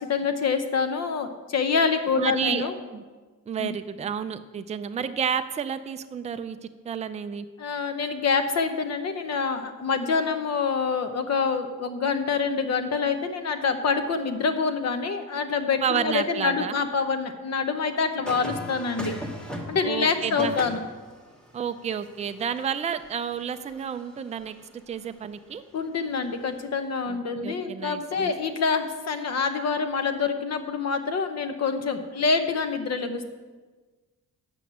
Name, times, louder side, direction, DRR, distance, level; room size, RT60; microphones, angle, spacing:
voice 1, 0.0-2.7 3.6-3.7 7.6-19.1 19.7-20.8 25.7-33.3, left 5 dB, 50° left, 8 dB, 0.8 m, -26 dB
voice 2, 2.2-3.0 3.5-6.6 6.9-7.5 15.8-16.8 19.8-20.6 21.5-24.6 24.9-25.6 27.1-28.3, right 7 dB, 20° right, 10 dB, 0.3 m, -30 dB
sound 1, 18.3-24.6 26.4-26.7, equal, 5° left, 0.9 m, -39 dB
7.8 x 6.1 x 8.0 m, 1.3 s
wide cardioid pair, 175°, 33 cm